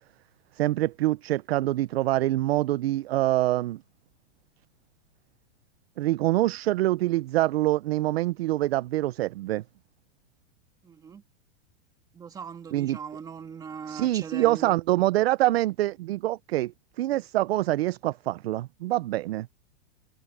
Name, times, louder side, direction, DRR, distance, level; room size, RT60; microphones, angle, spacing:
voice 1, 0.6-3.8 6.0-9.6 12.7-13.0 13.9-19.5, right 16 dB, 60° right, 0.6 m, -25 dB
voice 2, 10.8-11.2 12.1-14.8, right 6 dB, 10° right, 1.8 m, -40 dB
supercardioid pair, 170°, 35 cm